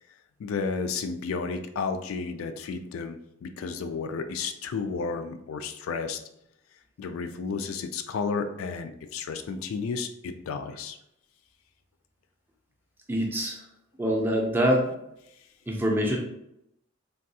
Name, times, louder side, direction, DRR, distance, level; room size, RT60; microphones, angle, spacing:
voice 1, 0.4-6.2 7.0-11.0, left 5 dB, 90° left, 8 dB, 0.3 m, -32 dB
voice 2, 13.1-13.6 14.0-14.9 15.7-16.2, equal, 10° right, 0 dB, 0.4 m, -24 dB
3.4 x 2.3 x 2.7 m, 0.78 s
head